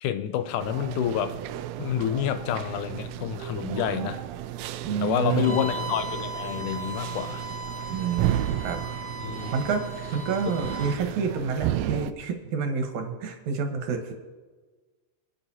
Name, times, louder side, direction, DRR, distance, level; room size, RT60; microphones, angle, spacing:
voice 1, 0.0-1.4 1.8-4.2 5.0-7.4 9.2-9.5, left 10 dB, 80° left, 10 dB, 2.2 m, -28 dB
sound 1, 0.6-12.1, right 13 dB, 85° right, 1.5 m, -33 dB
voice 2, 3.6-4.1 4.8-5.6 7.9-8.8 9.5-9.8 10.1-14.1, right 6 dB, 70° right, 4 dB, 2.5 m, -29 dB
Bowed string instrument, 5.3-11.0, left 1 dB, 10° right, 3.5 m, -37 dB
26.5 x 9.6 x 2.8 m, 1.4 s
omnidirectional pair, 3.7 m